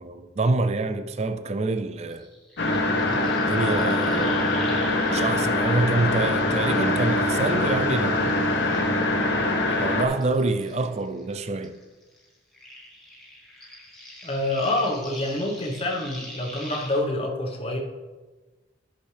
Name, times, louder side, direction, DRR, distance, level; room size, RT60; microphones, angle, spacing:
voice 1, 0.0-2.3 3.2-4.6 5.1-8.5 9.6-11.8, right 3 dB, 35° right, 0.4 m, -27 dB
sound 1, 2.1-7.6 8.0-11.3 11.6-17.0, left 1 dB, ahead, 1.7 m, -44 dB
sound 2, 2.6-10.0, left 2 dB, 65° left, 1.0 m, -23 dB
voice 2, 14.2-17.8, left 1 dB, 30° left, 1.1 m, -27 dB
11.0 x 6.3 x 3.3 m
head